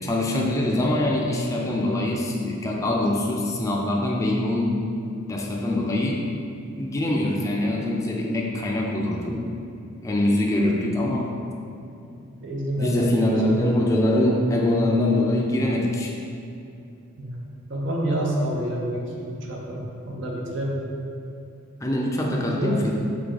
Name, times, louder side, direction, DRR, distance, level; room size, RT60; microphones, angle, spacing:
voice 1, 0.0-4.8 5.3-6.3 6.7-9.4 10.0-11.3 12.8-16.1 21.8-22.9, left 1 dB, 15° left, -1 dB, 0.3 m, -23 dB
voice 2, 12.4-13.3 17.2-17.4 17.7-20.9 22.3-22.8, right 1 dB, 65° right, -2 dB, 0.6 m, -28 dB
3.5 x 3.3 x 3.9 m, 2.6 s
head